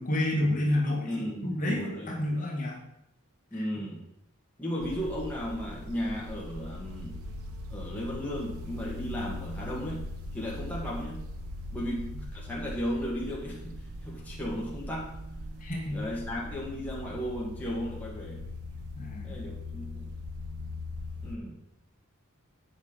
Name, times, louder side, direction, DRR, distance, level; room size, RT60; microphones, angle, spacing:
voice 1, 0.0-1.1 1.4-2.8 3.5-3.6 10.4-10.5 15.6-16.1 19.0-19.4, left 1 dB, 35° left, -3 dB, 2.0 m, -29 dB
voice 2, 1.1-2.1 3.5-4.0 4.6-7.2 7.7-10.0 10.3-11.2 11.7-15.1 15.9-18.4 19.2-20.1 21.2-21.6, equal, 5° left, -6 dB, 1.9 m, -35 dB
sound 1, 4.8-21.4, left 1 dB, 75° right, 0.9 m, -40 dB
8.6 x 5.9 x 5.2 m, 0.79 s
head